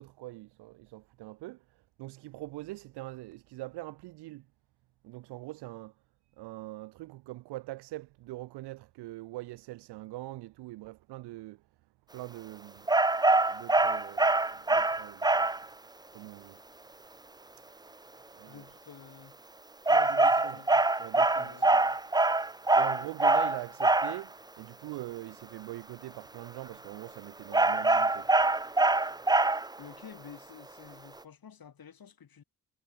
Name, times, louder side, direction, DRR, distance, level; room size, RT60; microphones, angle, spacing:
voice 1, 0.0-4.5 5.0-5.9 6.4-11.6 12.1-13.0 13.4-15.5 16.1-16.6 17.6-17.7 18.3-18.6 20.1-20.6 21.0-21.8 22.7-28.5, right 18 dB, 90° right, 0.8 m, -43 dB
sound 1, 12.9-15.6 19.9-24.2 27.5-29.8, right 2 dB, 10° right, 0.6 m, -24 dB
voice 2, 18.5-19.4 19.9-20.9 21.1-22.0 29.8-32.4, left 7 dB, 60° left, 4.1 m, -50 dB
supercardioid pair, 45°, 39 cm